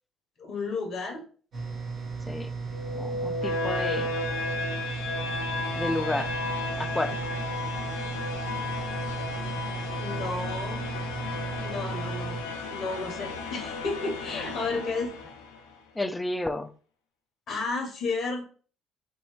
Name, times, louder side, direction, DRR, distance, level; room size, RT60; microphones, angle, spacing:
voice 1, 0.4-1.3 10.0-10.8 11.6-12.4 12.7-15.1 17.5-18.5, left 3 dB, 60° left, 2 dB, 0.8 m, -32 dB
sound 1, 1.5-12.4, right 4 dB, 65° right, 1.1 m, -35 dB
sound 2, 2.7-15.7, left 3 dB, 85° left, 0.4 m, -34 dB
voice 2, 2.9-4.1 5.7-6.4 6.8-7.3 16.0-16.7, left 2 dB, 15° left, 10 dB, 0.4 m, -31 dB
3.0 x 2.7 x 2.9 m, 0.41 s
hypercardioid pair, 60°, 0 cm